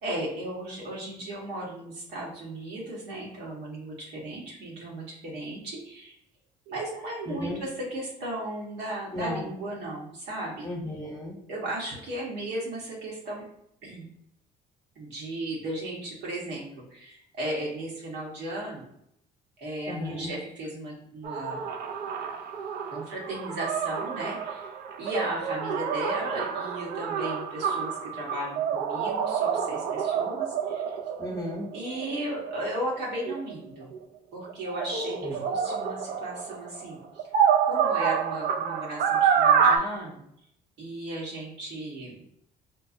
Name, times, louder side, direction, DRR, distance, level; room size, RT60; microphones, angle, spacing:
voice 1, 0.0-6.2 6.7-10.7 11.5-13.4 13.8-14.1 14.9-18.8 19.6-21.7 22.9-24.7 25.0-31.0 31.7-33.9 34.3-37.0 37.6-40.2 40.8-42.2, right 1 dB, 80° right, -3 dB, 1.3 m, -35 dB
voice 2, 7.3-7.6 9.1-9.5 10.6-11.4 19.9-20.3 31.2-31.7 35.2-35.4, left 1 dB, 20° left, 0 dB, 0.8 m, -34 dB
sound 1, 21.2-34.0 34.5-39.8, right 7 dB, 65° right, 0.4 m, -28 dB
4.2 x 2.0 x 2.6 m, 0.73 s
cardioid pair, 110°, 17 cm